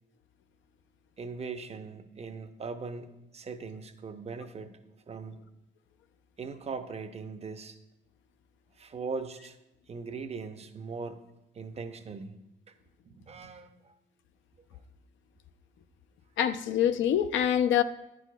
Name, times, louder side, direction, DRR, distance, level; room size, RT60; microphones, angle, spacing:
voice 1, 1.2-4.8 5.1-5.4 6.4-7.8 8.8-9.6 9.9-11.2 11.5-12.4 12.7-12.8 13.0-14.0, right 4 dB, 30° right, 0.6 m, -40 dB
voice 2, 16.4-17.8, left 9 dB, 70° left, 0.4 m, -25 dB
9.4 x 6.2 x 2.3 m
cardioid pair, 90°, 20 cm